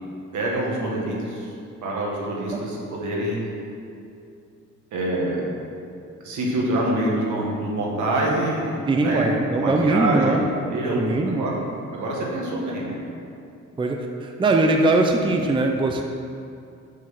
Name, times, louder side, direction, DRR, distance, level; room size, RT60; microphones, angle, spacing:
voice 1, 0.3-1.5 1.8-3.4 4.9-5.5 6.2-9.3 9.6-11.6 11.9-13.0, right 1 dB, 75° right, -3 dB, 1.8 m, -26 dB
voice 2, 8.9-10.4 10.9-11.5 13.8-16.0, right 2 dB, 15° right, 3 dB, 0.5 m, -21 dB
7.3 x 3.8 x 6.2 m, 2.5 s
cardioid pair, 90°, 30 cm